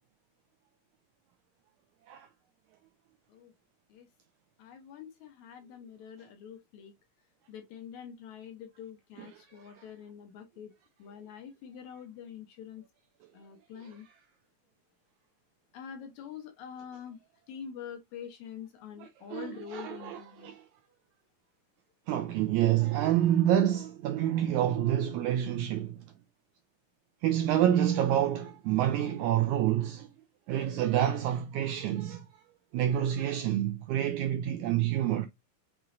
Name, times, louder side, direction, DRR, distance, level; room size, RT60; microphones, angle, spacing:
voice 1, 4.6-6.9 7.5-12.8 13.3-14.1 15.7-17.2 17.5-20.5, left 8 dB, 75° left, 1.9 m, -45 dB
voice 2, 9.2-9.8 13.7-14.0 19.0-20.6 22.1-26.1 27.2-30.1 30.5-32.3 32.7-35.3, right 11 dB, 85° right, 1.7 m, -28 dB
5.8 x 3.0 x 2.5 m
omnidirectional pair, 3.8 m